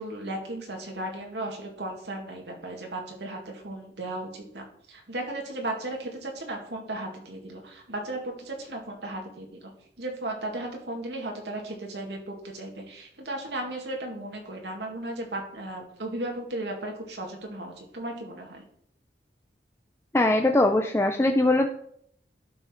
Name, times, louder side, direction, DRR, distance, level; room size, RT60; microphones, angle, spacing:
voice 1, 0.0-9.7 10.0-18.6, right 1 dB, 75° right, 1 dB, 2.1 m, -35 dB
voice 2, 20.1-21.7, left 2 dB, 15° left, 4 dB, 0.5 m, -21 dB
11.5 x 5.9 x 4.5 m, 0.66 s
head